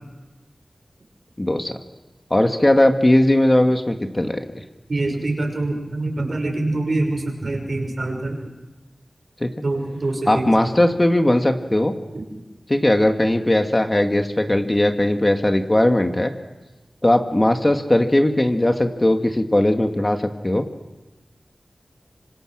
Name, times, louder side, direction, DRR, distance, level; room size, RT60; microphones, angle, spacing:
voice 1, 1.4-1.8 2.3-4.4 9.4-9.5 10.3-11.9 12.7-16.3 17.0-20.6, left 1 dB, 25° left, 5 dB, 2.0 m, -18 dB
voice 2, 4.9-8.5 9.6-10.7, right 2 dB, 65° right, 2 dB, 6.0 m, -25 dB
26.0 x 25.5 x 6.4 m, 1.1 s
wide cardioid pair, 50°, 0 cm